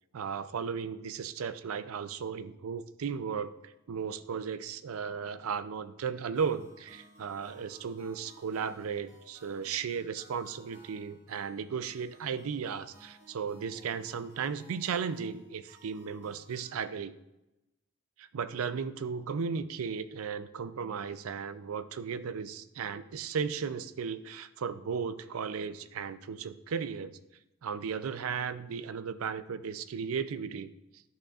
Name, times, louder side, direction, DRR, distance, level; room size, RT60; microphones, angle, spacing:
voice 1, 0.1-17.1 18.2-27.2 27.6-30.7, right 6 dB, 90° right, 13 dB, 0.4 m, -35 dB
sound 1, 6.3-16.8, right 2 dB, 70° right, 2.0 m, -59 dB
10.5 x 6.3 x 2.4 m, 0.93 s
head